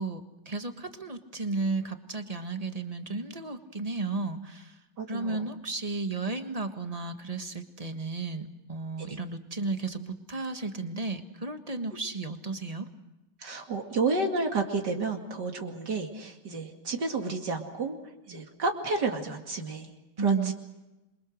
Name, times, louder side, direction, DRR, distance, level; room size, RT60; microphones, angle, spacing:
voice 1, 0.0-4.8 5.1-12.9 20.2-20.5, right 3 dB, 20° right, 7 dB, 1.6 m, -33 dB
voice 2, 5.0-5.5 9.0-9.2 13.4-18.0 18.3-19.9 20.2-20.5, right 3 dB, 75° right, 2 dB, 2.9 m, -31 dB
27.5 x 23.5 x 6.5 m, 1.0 s
omnidirectional pair, 1.9 m